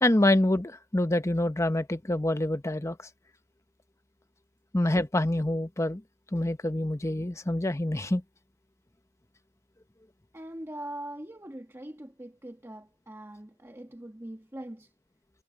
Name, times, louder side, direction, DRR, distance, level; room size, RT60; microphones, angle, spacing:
voice 1, 0.0-3.0 4.7-6.0 6.3-8.2, left 1 dB, 15° left, 0.8 m, -26 dB
voice 2, 10.3-14.9, right 1 dB, 10° right, 1.3 m, -42 dB
head